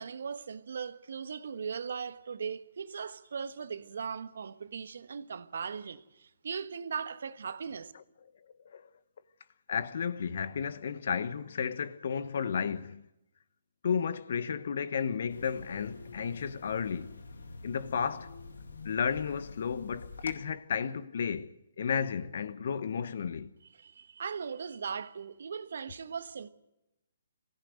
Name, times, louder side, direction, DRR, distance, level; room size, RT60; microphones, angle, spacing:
voice 1, 0.0-7.9 23.8-26.5, right 6 dB, 65° right, 1.3 m, -39 dB
voice 2, 9.7-13.1 13.8-17.2 17.6-18.3 18.8-21.5 21.8-23.5, left 7 dB, 60° left, 1.2 m, -33 dB
sound 1, 15.3-20.4, left 3 dB, 75° left, 2.2 m, -47 dB
23.0 x 16.0 x 8.0 m
figure-of-eight pair, 140°, 0 cm